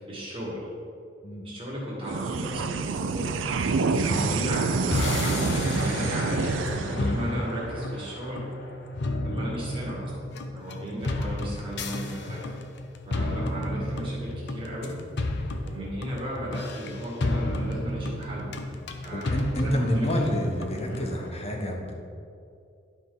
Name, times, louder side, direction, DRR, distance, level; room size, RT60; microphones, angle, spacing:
voice 1, 0.1-0.7 1.4-3.3 4.0-8.5 9.2-10.1 10.5-12.4 13.1-14.9 15.6-18.5 19.0-20.3 20.9-21.0, equal, 30° right, -6 dB, 2.2 m, -35 dB
sound 1, 2.0-8.8, right 4 dB, 75° right, 0.5 m, -28 dB
sound 2, 4.9-21.3, left 1 dB, 65° left, 0.6 m, -32 dB
voice 2, 19.1-21.9, equal, 35° left, 1 dB, 1.1 m, -29 dB
11.5 x 5.3 x 4.0 m, 2.5 s
head